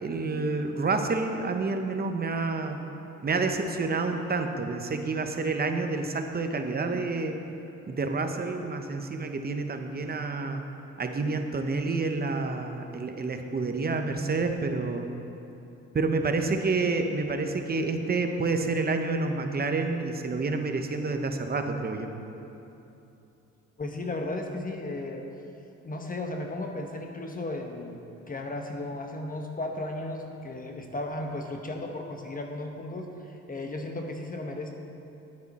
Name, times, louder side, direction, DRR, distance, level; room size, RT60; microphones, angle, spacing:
voice 1, 0.0-2.8 3.2-7.4 7.9-10.6 11.0-15.1 15.9-22.1, right 3 dB, 30° right, 5 dB, 0.9 m, -29 dB
voice 2, 23.8-25.2 25.8-34.7, left 2 dB, 30° left, 3 dB, 0.9 m, -35 dB
9.7 x 9.3 x 4.3 m, 2.9 s
cardioid pair, 90°, 30 cm